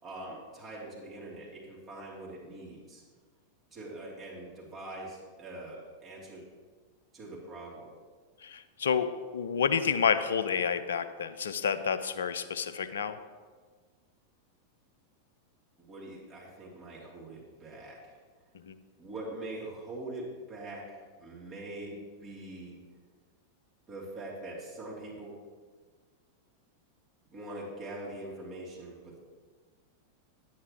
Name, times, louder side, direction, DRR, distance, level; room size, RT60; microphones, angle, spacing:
voice 1, 0.0-3.0 3.7-6.4 7.1-7.9 15.9-18.1 19.0-22.8 23.9-25.3 27.3-29.2, right 1 dB, 25° right, -6 dB, 3.0 m, -43 dB
voice 2, 8.4-13.2 18.6-18.8, left 6 dB, 65° left, 12 dB, 0.5 m, -29 dB
10.0 x 9.5 x 3.1 m, 1.5 s
figure-of-eight pair, 90°, 0 cm